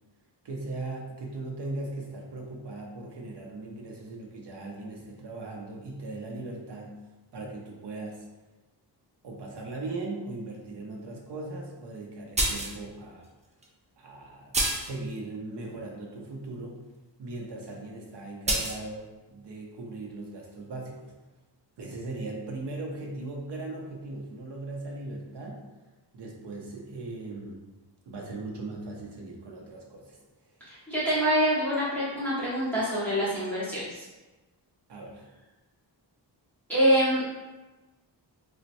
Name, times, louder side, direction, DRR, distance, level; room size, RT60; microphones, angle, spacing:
voice 1, 0.4-7.0 7.3-8.2 9.2-13.3 14.0-14.5 14.8-16.8 17.2-21.1 21.8-25.6 26.1-27.6 28.1-30.2 34.9-35.3, right 2 dB, 70° right, -1 dB, 0.7 m, -38 dB
sound 1, 12.4-12.8 13.6-13.7 14.5-15.0 18.5-18.8, right 1 dB, 20° right, 0.3 m, -27 dB
voice 2, 30.7-34.0 36.7-37.2, equal, 5° left, -11 dB, 0.9 m, -25 dB
4.0 x 2.2 x 2.6 m, 1.1 s
wide cardioid pair, 170°, 44 cm